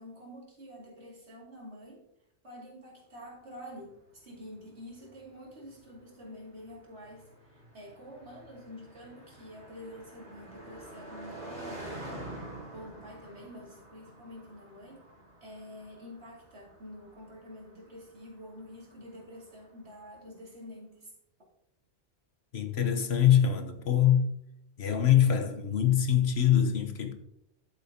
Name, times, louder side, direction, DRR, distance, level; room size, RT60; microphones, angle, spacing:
voice 1, 0.0-2.0 2.4-12.3 12.7-15.0 15.4-21.1, equal, 75° right, 2.9 m, -48 dB
Car passing by, 3.6-20.1, right 1 dB, 50° right, 3.7 m, -48 dB
voice 2, 22.5-24.3 24.8-27.1, left 9 dB, 70° left, 1.3 m, -24 dB
11.0 x 8.4 x 2.8 m
omnidirectional pair, 1.1 m